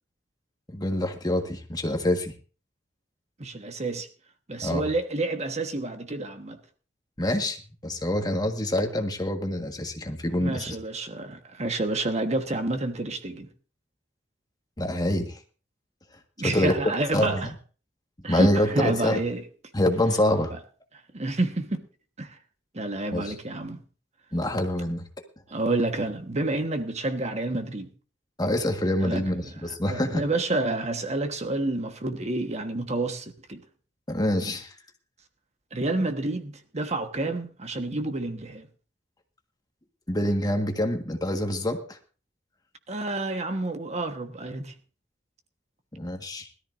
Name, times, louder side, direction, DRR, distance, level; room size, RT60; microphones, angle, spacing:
voice 1, 0.7-2.3 4.6-4.9 7.2-10.8 14.8-15.4 16.4-17.5 18.3-19.2 19.7-20.5 23.1-23.3 24.3-25.0 28.4-30.2 34.1-34.7 40.1-42.0 46.0-46.5, left 1 dB, 20° left, 1.5 m, -26 dB
voice 2, 3.4-4.1 4.5-6.6 10.4-13.5 16.4-17.5 18.2-18.5 18.7-19.4 21.1-21.8 22.2-22.3 22.7-23.8 25.5-27.9 29.0-29.2 29.7-33.6 35.7-38.7 42.9-44.7, right 2 dB, 40° right, 1.3 m, -29 dB
21.0 x 13.0 x 2.6 m
head